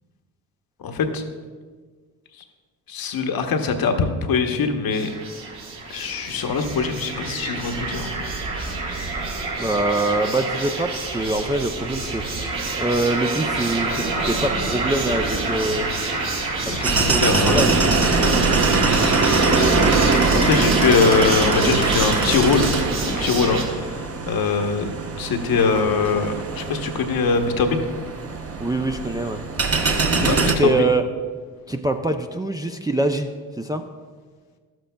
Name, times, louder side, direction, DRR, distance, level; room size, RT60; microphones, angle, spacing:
voice 1, 0.8-1.2 2.9-5.1 5.9-8.1 16.7-17.8 18.2-18.4 19.5-19.8 20.4-22.7 23.1-24.9 25.2-27.9 30.3-30.5, left 4 dB, 55° left, 6 dB, 1.0 m, -22 dB
sound 1, 4.9-23.6, right 3 dB, 65° right, 2.5 m, -27 dB
voice 2, 9.6-12.2 12.8-15.9 16.8-17.8 18.3-18.4 28.6-29.4 30.2-31.0 31.7-33.3 33.6-33.9, right 2 dB, 10° right, 4 dB, 0.4 m, -24 dB
sound 2, 16.8-30.6, right 4 dB, 35° right, 1.1 m, -22 dB
12.0 x 7.7 x 2.2 m, 1.5 s
hypercardioid pair, 55°, 42 cm